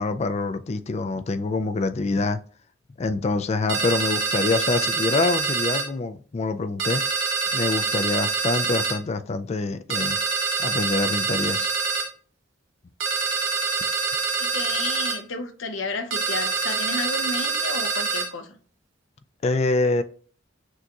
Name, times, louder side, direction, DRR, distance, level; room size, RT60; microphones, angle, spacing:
voice 1, 0.0-2.4 3.0-7.0 7.5-10.2 10.6-11.7 19.4-20.0, left 3 dB, 35° left, 0.4 m, -25 dB
sound 1, 3.7-5.9 6.8-9.0 9.9-12.1 13.0-15.2 16.1-18.3, right 5 dB, 70° right, 0.9 m, -25 dB
voice 2, 14.4-18.6, left 3 dB, 75° left, 0.7 m, -32 dB
6.2 x 2.9 x 2.3 m
head